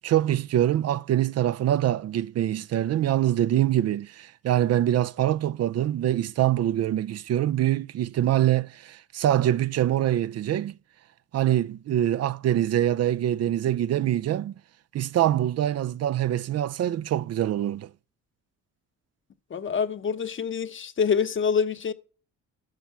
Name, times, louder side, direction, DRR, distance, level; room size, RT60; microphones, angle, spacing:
voice 1, 0.0-10.7 11.3-14.5 14.9-17.9, right 12 dB, 55° right, 0.5 m, -24 dB
voice 2, 19.5-21.9, left 6 dB, 40° left, 0.9 m, -26 dB
11.5 x 7.1 x 4.5 m
cardioid pair, 90°, 30 cm